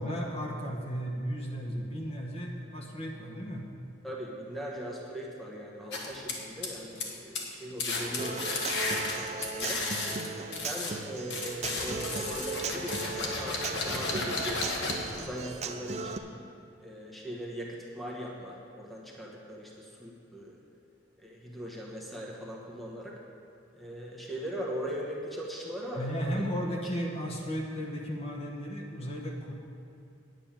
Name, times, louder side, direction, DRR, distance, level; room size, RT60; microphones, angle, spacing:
voice 1, 0.0-3.6 26.0-29.5, equal, 35° left, 0 dB, 1.2 m, -34 dB
voice 2, 4.0-9.8 10.6-16.3 16.8-20.6 21.2-23.2 23.8-26.4, equal, ahead, -3 dB, 1.1 m, -40 dB
sound 1, 5.9-7.1 7.4-7.5 7.8-10.9 11.3-15.2, left 3 dB, 65° left, 1.4 m, -33 dB
Human voice / Acoustic guitar, 8.2-16.2, right 4 dB, 35° right, 0.5 m, -38 dB
9.4 x 6.5 x 8.8 m, 2.6 s
head